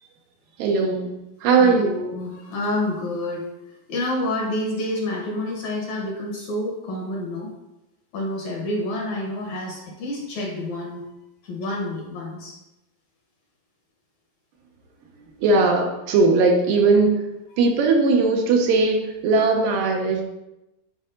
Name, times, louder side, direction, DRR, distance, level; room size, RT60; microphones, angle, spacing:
voice 1, 0.6-1.1 1.4-2.0 15.4-17.2 17.6-20.2, right 3 dB, 80° right, 2 dB, 2.4 m, -19 dB
voice 2, 1.6-3.5 3.9-7.5 8.1-11.0 11.4-12.5, left 1 dB, 65° left, -1 dB, 2.0 m, -28 dB
10.0 x 4.7 x 2.6 m, 0.93 s
omnidirectional pair, 4.1 m